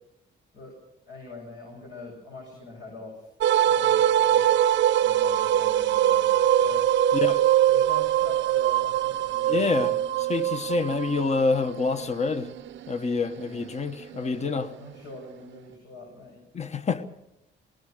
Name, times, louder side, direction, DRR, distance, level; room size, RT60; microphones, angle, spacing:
voice 1, 1.1-3.3 3.6-4.6 5.0-6.9 7.7-9.9 13.4-13.9 14.2-16.4, left 2 dB, 75° left, 7.8 m, -44 dB
sound 1, 3.4-14.6, right 11 dB, 70° right, 0.7 m, -23 dB
voice 2, 7.1-7.4 9.5-9.9 10.3-12.5 12.9-14.7 16.5-17.0, left 4 dB, 35° left, 1.2 m, -27 dB
20.5 x 19.5 x 6.6 m
cardioid pair, 90°, 20 cm